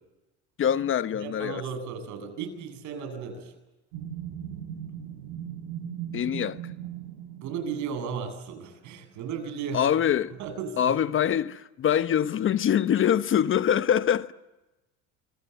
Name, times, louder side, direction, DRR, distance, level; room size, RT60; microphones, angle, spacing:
voice 1, 0.6-1.6 6.1-6.6 9.7-10.3 10.8-14.3, left 9 dB, 40° left, 1.1 m, -24 dB
voice 2, 1.2-3.5 7.4-9.9 10.4-11.0, right 6 dB, 60° right, 7.8 m, -35 dB
sound 1, 3.9-7.8, right 9 dB, 80° right, 7.7 m, -38 dB
27.5 x 25.0 x 8.0 m
supercardioid pair, 90°, 32 cm